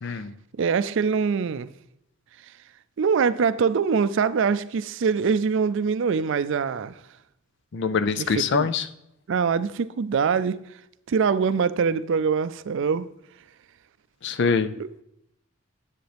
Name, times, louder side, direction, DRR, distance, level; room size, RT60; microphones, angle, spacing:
voice 1, 0.0-0.3 7.7-8.9 14.2-14.7, left 5 dB, 60° left, 0.5 m, -24 dB
voice 2, 0.6-1.7 3.0-7.0 8.2-8.7 9.3-10.6 11.1-13.1 14.8-14.9, right 6 dB, 65° right, 0.4 m, -23 dB
10.5 x 8.1 x 3.4 m
head